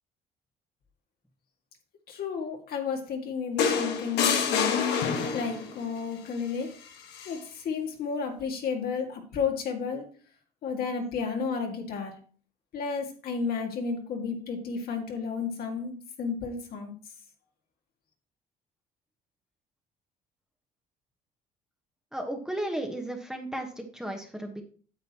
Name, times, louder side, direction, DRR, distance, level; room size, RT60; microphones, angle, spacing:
voice 1, 2.1-4.8 5.3-6.7 7.3-10.1 10.6-12.1 12.7-16.9, left 5 dB, 65° left, 2 dB, 1.9 m, -32 dB
sound 1, 3.6-5.7 7.1-7.3, left 6 dB, 80° left, 1.4 m, -27 dB
voice 2, 22.1-24.6, right 1 dB, 5° right, 2 dB, 1.2 m, -34 dB
8.9 x 7.8 x 3.0 m, 0.43 s
cardioid pair, 110°, 17 cm